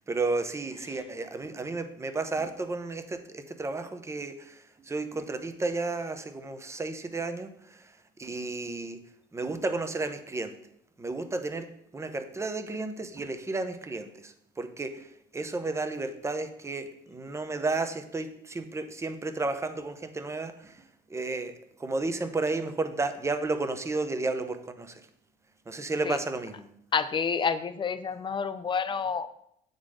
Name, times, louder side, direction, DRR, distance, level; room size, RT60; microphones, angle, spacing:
voice 1, 0.0-4.6 4.9-7.5 8.2-9.0 9.3-10.5 11.0-11.7 11.9-15.0 15.3-20.7 21.1-21.5 21.8-25.0 25.7-26.6, right 3 dB, 15° right, 9 dB, 0.7 m, -32 dB
voice 2, 26.9-29.3, left 6 dB, 30° left, 12 dB, 0.5 m, -29 dB
8.5 x 4.0 x 4.9 m, 0.74 s
cardioid pair, 110°, 17 cm